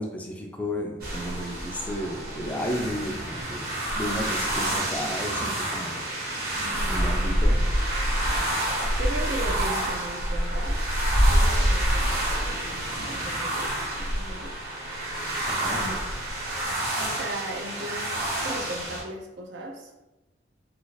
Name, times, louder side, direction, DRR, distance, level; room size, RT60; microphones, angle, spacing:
voice 1, 0.0-3.7 3.9-6.0 6.9-7.7 15.5-15.8, equal, 10° left, 1 dB, 0.3 m, -33 dB
sound 1, 1.0-19.0, right 1 dB, 55° right, 1.0 m, -27 dB
voice 2, 6.6-7.2 9.0-10.8 11.3-12.7 13.0-14.5 15.7-20.0, right 1 dB, 75° right, 2 dB, 0.5 m, -37 dB
2.5 x 2.4 x 3.1 m, 1.1 s
head